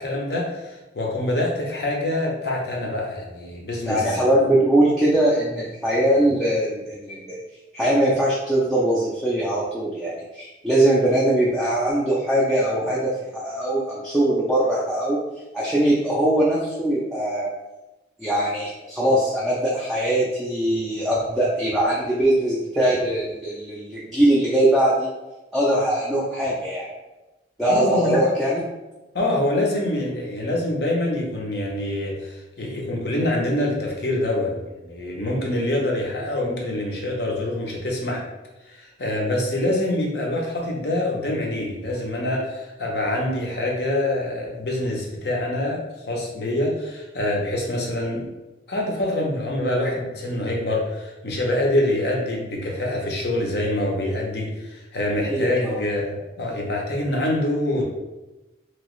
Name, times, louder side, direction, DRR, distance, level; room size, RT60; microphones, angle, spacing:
voice 1, 0.0-4.2 27.7-28.2 29.1-38.2 38.7-45.8 46.1-48.2 48.7-57.8, left 1 dB, 60° left, -1 dB, 0.7 m, -25 dB
voice 2, 3.9-7.4 7.7-15.2 15.5-17.5 18.2-25.1 25.5-26.9 27.6-28.6 55.3-55.8, right 1 dB, ahead, -7 dB, 0.4 m, -21 dB
3.0 x 2.8 x 3.0 m, 1.1 s
head